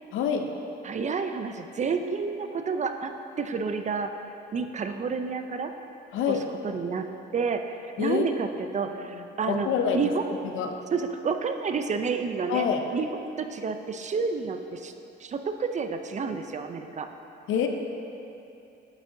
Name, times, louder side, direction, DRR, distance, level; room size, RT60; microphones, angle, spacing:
voice 1, 0.1-0.5 6.1-6.5 8.0-8.2 9.1-10.0 10.5-10.7 12.5-12.8 17.5-17.7, left 7 dB, 80° left, 4 dB, 0.6 m, -26 dB
voice 2, 0.8-4.1 4.5-5.7 6.3-6.4 6.6-8.5 8.7-9.7 9.9-10.3 10.9-12.7 12.9-13.1 13.4-14.9 15.2-17.1, right 5 dB, 35° right, 7 dB, 0.5 m, -30 dB
8.1 x 8.1 x 2.7 m, 2.9 s
cardioid pair, 90°, 20 cm